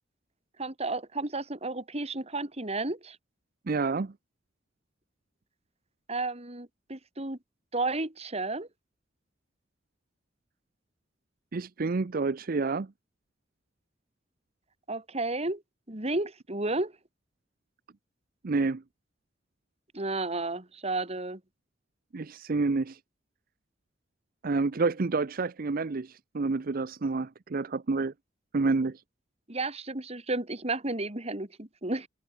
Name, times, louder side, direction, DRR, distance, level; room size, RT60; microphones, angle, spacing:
voice 1, 0.6-3.2 6.1-7.4 7.7-8.7 14.9-15.6 15.9-16.9 19.9-21.4 29.5-32.1, right 2 dB, 35° right, 2.8 m, -32 dB
voice 2, 3.7-4.1 11.5-12.9 18.4-18.8 22.1-23.0 24.4-28.1 28.5-29.0, right 3 dB, 50° right, 0.6 m, -29 dB
head